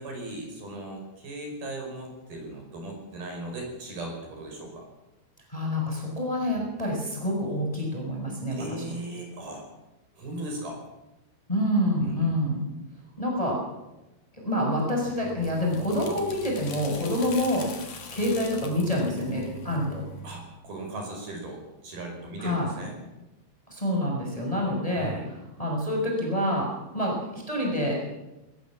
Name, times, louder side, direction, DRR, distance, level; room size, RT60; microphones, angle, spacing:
voice 1, 0.0-4.9 6.6-6.7 8.5-9.7 10.2-10.8 12.0-12.3 16.9-17.0 20.2-22.9 24.6-25.3, right 1 dB, 50° right, 2 dB, 7.0 m, -38 dB
voice 2, 5.5-8.6 11.5-12.6 13.2-13.6 14.4-20.0 22.4-22.7 23.7-25.1 25.6-26.7 26.9-28.0, left 1 dB, 5° left, 0 dB, 5.9 m, -27 dB
sound 1, 15.0-20.5, left 1 dB, 50° left, 3.9 m, -42 dB
21.0 x 20.5 x 7.5 m, 0.99 s
omnidirectional pair, 5.6 m